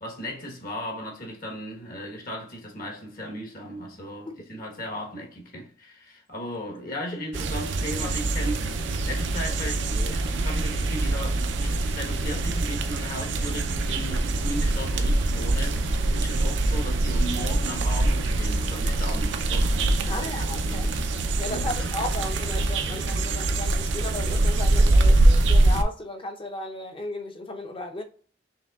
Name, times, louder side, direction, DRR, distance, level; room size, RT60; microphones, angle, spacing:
voice 1, 0.0-20.9 21.5-21.9, equal, 50° left, 1.3 m, -36 dB
sound 1, 7.3-25.8, right 2 dB, 75° right, 0.5 m, -24 dB
voice 2, 20.1-20.9 21.4-28.0, left 2 dB, 30° left, 0.7 m, -35 dB
5.4 x 3.2 x 2.4 m
head